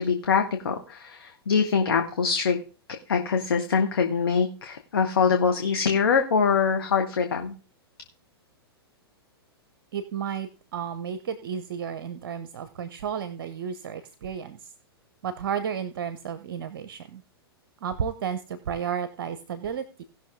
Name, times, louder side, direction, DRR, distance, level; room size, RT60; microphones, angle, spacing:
voice 1, 0.0-2.6 3.1-7.5, left 6 dB, 65° left, 5 dB, 1.3 m, -24 dB
voice 2, 9.9-14.7 15.2-17.2 17.8-20.0, right 7 dB, 55° right, 12 dB, 0.8 m, -32 dB
17.5 x 6.2 x 3.6 m, 0.36 s
figure-of-eight pair, 105°, 13 cm